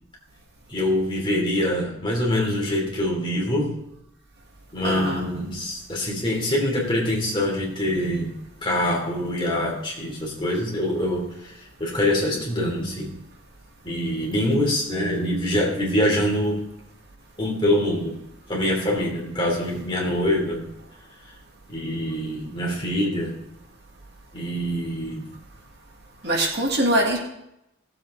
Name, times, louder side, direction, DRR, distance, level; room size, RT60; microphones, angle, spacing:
voice 1, 0.7-3.8 4.7-8.3 8.6-13.1 13.8-16.6 17.4-18.2 18.5-20.7 21.7-23.4 24.3-25.3, left 1 dB, 25° left, -2 dB, 3.0 m, -24 dB
voice 2, 4.8-5.3 26.2-27.2, right 1 dB, 50° right, 0 dB, 1.8 m, -23 dB
17.5 x 7.8 x 3.8 m, 0.82 s
head